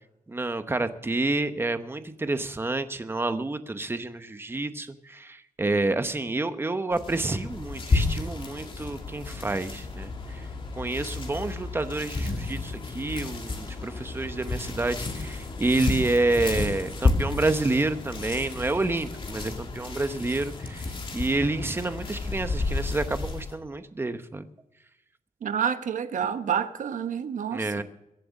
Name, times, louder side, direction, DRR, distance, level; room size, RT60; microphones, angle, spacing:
voice 1, 0.3-10.5 10.8-24.5 27.5-27.8, right 2 dB, 15° right, 1.0 m, -29 dB
sound 1, 6.9-23.6, left 3 dB, 40° left, 2.3 m, -31 dB
voice 2, 25.4-27.8, right 8 dB, 70° right, 1.1 m, -28 dB
22.5 x 7.8 x 6.5 m
wide cardioid pair, 155°, 14 cm